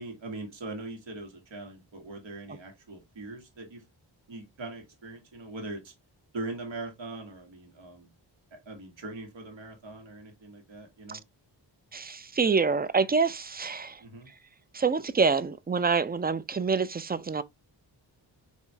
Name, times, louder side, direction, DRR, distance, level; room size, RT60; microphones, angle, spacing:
voice 1, 0.0-3.8 4.3-5.9 6.3-8.1 8.5-11.2 14.0-14.3, right 2 dB, 75° right, 1.7 m, -41 dB
voice 2, 11.9-13.9 14.7-17.4, right 5 dB, 25° right, 0.3 m, -26 dB
4.5 x 3.0 x 3.1 m
cardioid pair, 65°, 45 cm